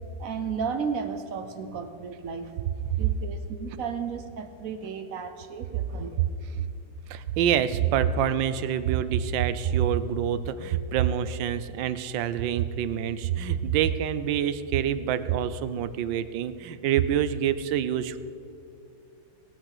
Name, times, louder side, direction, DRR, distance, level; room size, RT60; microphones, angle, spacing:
voice 1, 0.2-2.5 3.0-6.3 6.5-6.7, right 6 dB, 60° right, 7 dB, 0.9 m, -34 dB
voice 2, 7.1-18.2, right 9 dB, 80° right, 13 dB, 1.3 m, -26 dB
18.5 x 6.2 x 6.6 m, 2.6 s
omnidirectional pair, 2.1 m